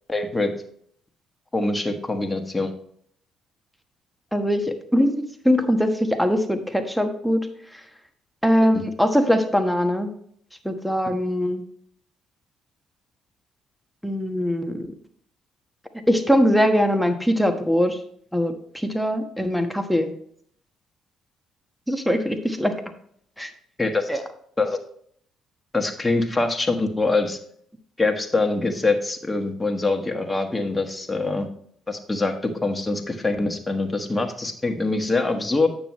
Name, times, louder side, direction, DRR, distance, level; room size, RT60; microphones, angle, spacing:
voice 1, 0.1-0.5 1.5-2.7 8.7-8.8 23.8-24.1 24.6-24.8 25.7-27.4 28.0-31.5 31.9-35.7, left 3 dB, 20° left, 4 dB, 1.4 m, -24 dB
voice 2, 4.3-5.1 5.4-7.4 8.4-10.1 10.6-11.6 14.0-14.9 16.1-18.0 18.3-20.1 21.9-22.7 23.4-23.5 24.1-24.2, equal, ahead, 6 dB, 1.2 m, -21 dB
9.0 x 6.9 x 3.1 m, 0.63 s
supercardioid pair, 65°, 0 cm